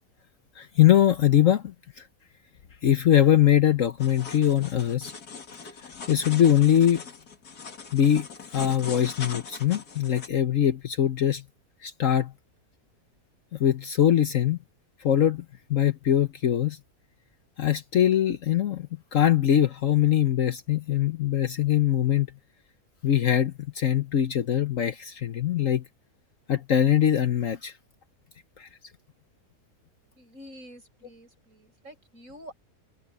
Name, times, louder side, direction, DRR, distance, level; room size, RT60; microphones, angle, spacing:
voice 1, 0.6-1.7 2.8-5.1 6.1-7.0 7.9-8.3 8.5-11.4 11.8-12.3 13.6-14.6 15.0-15.4 15.7-16.8 17.6-22.3 23.0-25.8 26.5-27.7 28.6-28.7, left 10 dB, 60° left, 1.2 m, -22 dB
sound 1, 4.0-10.3, left 5 dB, 80° left, 2.6 m, -41 dB
voice 2, 30.2-32.5, equal, 55° right, 7.6 m, -47 dB
omnidirectional pair, 1.6 m